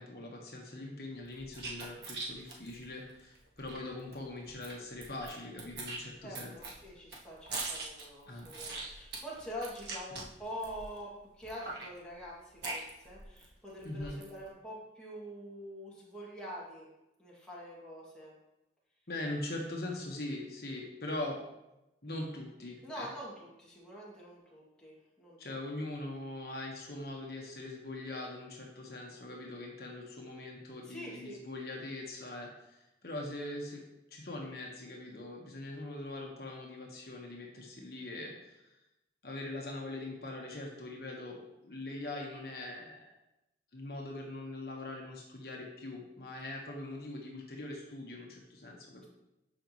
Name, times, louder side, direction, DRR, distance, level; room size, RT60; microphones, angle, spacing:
voice 1, 0.0-6.6 8.3-8.5 13.8-14.2 19.1-21.4 22.0-23.1 25.4-33.8 34.1-38.7 39.2-43.2 43.7-49.1, left 2 dB, 60° left, -1 dB, 1.3 m, -42 dB
sound 1, 1.3-3.8 4.1-4.2 4.4-5.3 5.6-11.0 11.4-13.5 13.8-14.4, right 3 dB, 70° right, 1.6 m, -42 dB
voice 2, 6.2-16.9 17.2-18.3 22.8-25.6 30.8-31.4, equal, 5° left, -7 dB, 2.3 m, -45 dB
12.5 x 5.2 x 3.1 m, 0.92 s
head